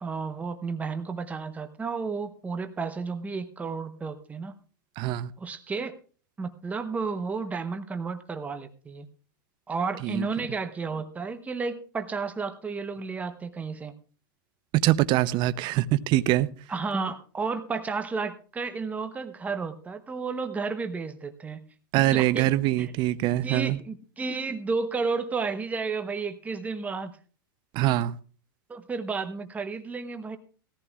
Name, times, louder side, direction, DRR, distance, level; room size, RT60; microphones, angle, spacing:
voice 1, 0.0-4.6 5.4-6.0 6.4-9.1 9.7-13.9 16.7-21.6 22.1-22.5 22.8-22.9 23.4-27.1 28.7-30.4, right 4 dB, 15° right, 0.9 m, -32 dB
voice 2, 5.0-5.3 10.0-10.5 14.8-16.5 21.9-23.8 27.7-28.2, right 15 dB, 40° right, 0.6 m, -24 dB
18.5 x 14.5 x 2.4 m
hypercardioid pair, 125°, 11 cm